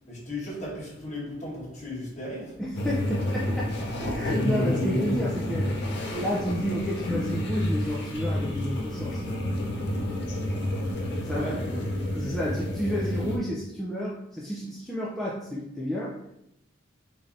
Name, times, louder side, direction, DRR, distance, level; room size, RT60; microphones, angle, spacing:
voice 1, 0.1-2.6 11.3-11.6, left 1 dB, 35° left, 1.4 m, -36 dB
voice 2, 2.6-3.8 4.1-9.4 11.2-11.6 12.1-16.3, equal, ahead, 0.4 m, -31 dB
sound 1, 2.7-13.4, left 1 dB, 55° left, 0.7 m, -29 dB
3.9 x 3.3 x 2.6 m
head